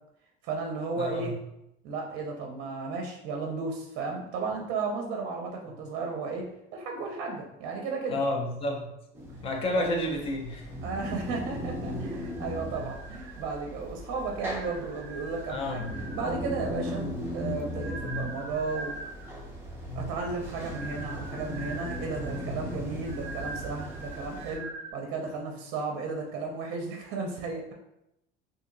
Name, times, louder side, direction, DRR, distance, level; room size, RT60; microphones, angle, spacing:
voice 1, 0.4-1.3 1.8-8.2 9.8-9.9 10.8-17.1 17.3-18.9 19.9-27.7, right 4 dB, 55° right, 2 dB, 0.6 m, -34 dB
voice 2, 1.0-1.3 8.1-8.9 9.4-10.7 15.5-15.9, left 1 dB, 30° left, 2 dB, 0.5 m, -30 dB
sound 1, 9.1-24.6, equal, 10° right, 0.7 m, -38 dB
sound 2, 12.0-13.7 14.2-16.6 17.3-19.5 20.4-24.9, right 3 dB, 35° right, 1.0 m, -43 dB
2.7 x 2.7 x 3.8 m, 0.84 s
cardioid pair, 165°, 21 cm